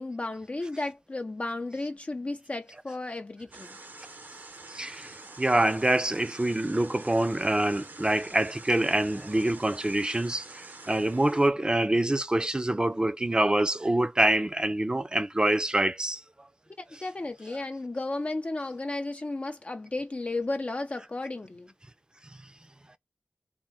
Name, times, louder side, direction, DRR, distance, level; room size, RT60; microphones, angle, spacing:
voice 1, 0.0-3.8 16.9-21.7, left 2 dB, 45° left, 0.4 m, -34 dB
sound 1, 3.5-11.5, right 3 dB, 80° right, 1.0 m, -46 dB
voice 2, 4.7-16.2, right 1 dB, 25° right, 0.5 m, -26 dB
3.6 x 2.2 x 3.0 m
wide cardioid pair, 50°, 3 cm